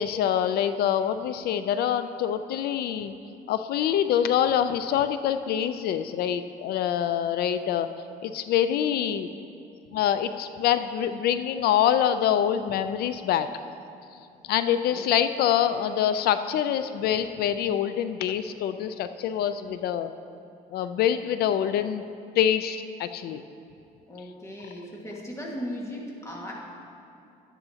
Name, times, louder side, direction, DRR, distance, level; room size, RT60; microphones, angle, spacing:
voice 1, 0.0-3.1 3.5-7.9 8.2-9.3 9.9-13.5 14.5-20.1 20.7-22.0 22.4-23.4, left 9 dB, 70° left, 11 dB, 0.4 m, -25 dB
voice 2, 24.1-26.5, equal, 15° left, -2 dB, 1.7 m, -37 dB
12.5 x 9.6 x 2.8 m, 2.6 s
cardioid pair, 110°, 17 cm